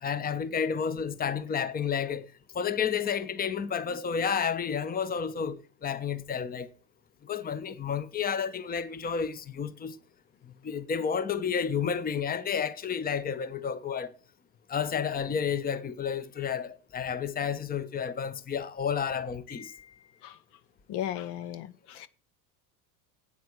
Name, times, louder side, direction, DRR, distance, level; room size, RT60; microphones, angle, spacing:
voice 1, 0.0-2.3 2.5-6.7 7.2-10.0 10.6-14.1 14.7-19.7, left 7 dB, 20° left, 0.8 m, -31 dB
voice 2, 20.9-22.1, left 11 dB, 60° left, 0.9 m, -36 dB
9.2 x 8.6 x 7.8 m
supercardioid pair, 100°, 46 cm